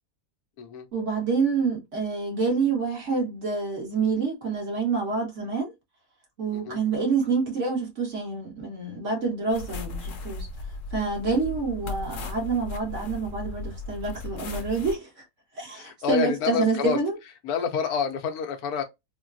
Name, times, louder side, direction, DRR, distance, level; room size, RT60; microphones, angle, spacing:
voice 1, 0.9-5.7 6.4-10.5 10.9-15.2 15.5-17.2, right 4 dB, 55° right, 1.7 m, -27 dB
sound 1, 9.5-14.9, left 3 dB, 65° left, 1.0 m, -36 dB
voice 2, 15.7-17.0 17.4-18.8, left 7 dB, 85° left, 1.2 m, -28 dB
3.7 x 2.2 x 2.5 m
omnidirectional pair, 1.6 m